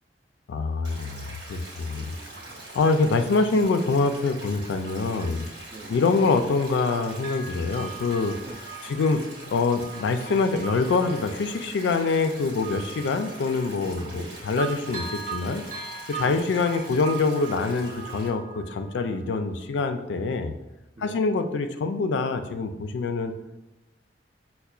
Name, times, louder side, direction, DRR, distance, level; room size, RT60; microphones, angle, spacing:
voice 1, 0.5-2.1 2.7-5.4 5.9-8.4 8.8-9.2 9.5-15.7 16.1-20.5 21.0-23.3, left 4 dB, 85° left, 8 dB, 0.3 m, -25 dB
Stream, 0.8-18.3, right 2 dB, 85° right, 1.2 m, -43 dB
voice 2, 1.9-2.7 5.7-6.1 8.5-9.0 14.2-14.3 16.2-16.5 21.0-21.3, right 2 dB, 35° right, 4 dB, 0.4 m, -44 dB
Bell, 4.6-6.6 6.8-14.3 14.6-19.2 19.6-19.7, right 6 dB, 50° right, 0.8 m, -41 dB
5.4 x 2.1 x 2.3 m, 0.96 s
head